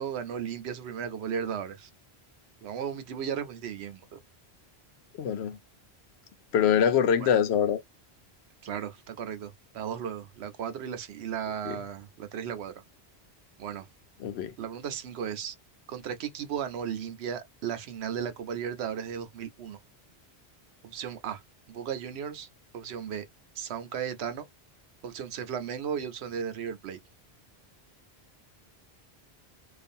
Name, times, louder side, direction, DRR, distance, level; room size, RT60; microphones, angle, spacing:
voice 1, 0.0-1.9 2.6-4.2 7.2-7.3 8.6-12.7 13.6-13.9 14.6-15.6 15.9-19.8 20.8-21.4 21.7-22.5 22.7-23.3 23.6-24.5 25.0-27.0, right 8 dB, 80° right, 0.9 m, -35 dB
voice 2, 5.2-5.6 6.5-7.8 11.7-11.8 14.2-14.5, left 8 dB, 75° left, 0.9 m, -24 dB
2.4 x 2.4 x 2.6 m
omnidirectional pair, 1.1 m